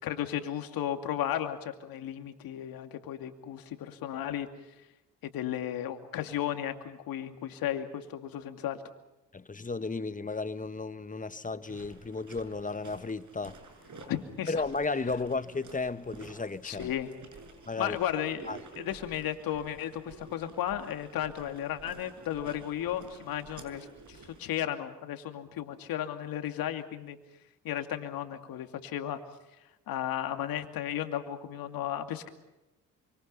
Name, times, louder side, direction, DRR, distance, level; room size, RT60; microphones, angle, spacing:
voice 1, 0.0-4.5 5.2-8.8 14.1-14.5 16.6-17.1 17.8-18.5 18.8-27.2 27.6-29.2 29.9-32.3, left 11 dB, 75° left, 2.6 m, -34 dB
voice 2, 9.3-13.6 14.5-16.9 17.7-18.0 18.5-18.6, left 3 dB, 20° left, 1.3 m, -34 dB
sound 1, 11.6-24.4, right 3 dB, 55° right, 6.6 m, -51 dB
27.0 x 25.5 x 5.6 m
supercardioid pair, 55°, 36 cm